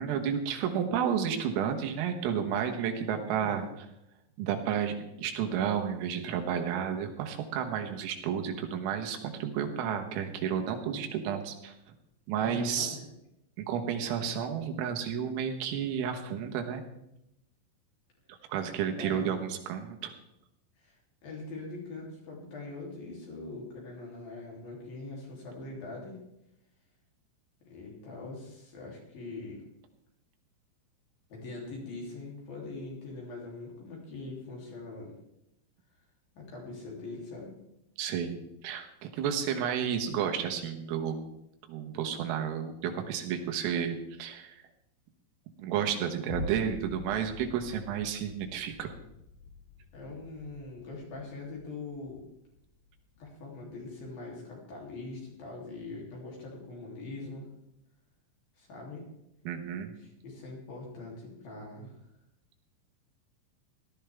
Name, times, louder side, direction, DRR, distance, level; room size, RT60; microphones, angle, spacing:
voice 1, 0.0-3.9 4.4-11.7 12.3-13.0 13.6-16.8 18.5-20.1 38.0-38.4 38.6-41.2 41.7-44.6 45.6-48.9 59.5-59.9, right 8 dB, 85° right, 4 dB, 4.0 m, -31 dB
voice 2, 3.3-3.8 12.4-13.1 19.0-19.4 20.8-26.2 27.7-29.6 31.3-35.1 36.3-37.5 49.9-52.3 53.2-57.5 58.6-59.1 60.0-61.9, left 3 dB, 50° left, -2 dB, 4.4 m, -42 dB
sound 1, 46.3-54.8 55.3-55.4, left 3 dB, 90° left, 2.1 m, -46 dB
17.5 x 13.0 x 3.5 m, 0.83 s
omnidirectional pair, 5.9 m